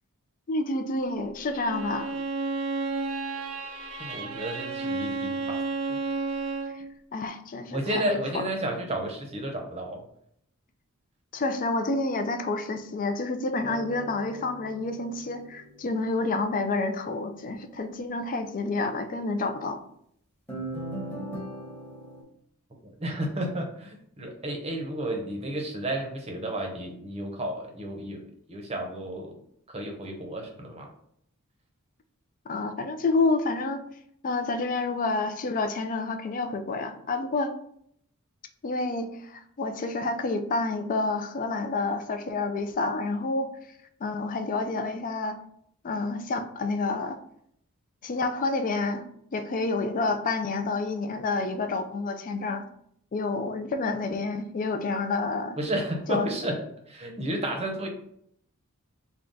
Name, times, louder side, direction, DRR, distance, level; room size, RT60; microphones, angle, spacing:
voice 1, 0.5-2.2 6.7-6.8 7.1-8.4 11.3-19.8 32.5-33.8 34.2-37.5 38.6-43.5 44.0-45.4 45.8-47.2 48.0-49.1 49.3-52.6 53.1-55.6 56.1-56.3, left 3 dB, 40° left, 8 dB, 0.4 m, -29 dB
Bowed string instrument, 1.5-6.8, right 3 dB, 75° right, 0.6 m, -32 dB
voice 2, 4.0-5.6 5.9-6.0 7.7-10.0 22.8-29.4 29.7-30.9 55.6-57.9, right 1 dB, 30° right, 2 dB, 0.7 m, -32 dB
sound 1, 13.6-16.2 20.5-22.2, right 1 dB, 5° left, 1.0 m, -39 dB
3.6 x 2.2 x 3.9 m, 0.69 s
head